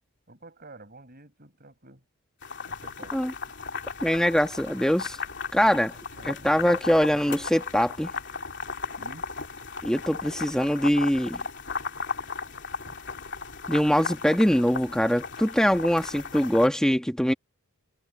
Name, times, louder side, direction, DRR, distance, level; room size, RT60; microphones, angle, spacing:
voice 1, 0.3-2.0 2.6-3.2 6.1-6.6 9.0-9.3 12.8-13.0, right 2 dB, 45° right, 7.0 m, -49 dB
sound 1, 2.4-16.7, left 5 dB, 55° left, 2.9 m, -36 dB
voice 2, 4.0-5.2 5.5-5.9 6.2-8.1 9.8-11.4 13.7-17.3, equal, 5° left, 1.4 m, -23 dB
head